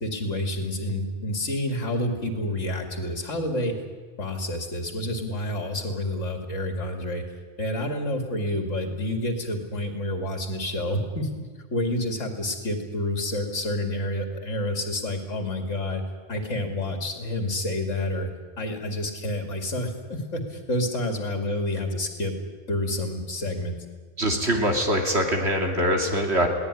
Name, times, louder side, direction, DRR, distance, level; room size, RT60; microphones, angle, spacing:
voice 1, 0.0-3.8 4.2-7.2 7.6-11.3 11.7-16.0 16.3-18.3 18.6-22.3 22.7-23.8, left 1 dB, 70° left, 5 dB, 2.9 m, -29 dB
voice 2, 24.2-26.5, equal, 55° right, 3 dB, 3.1 m, -23 dB
22.0 x 17.5 x 10.0 m, 1.5 s
omnidirectional pair, 1.3 m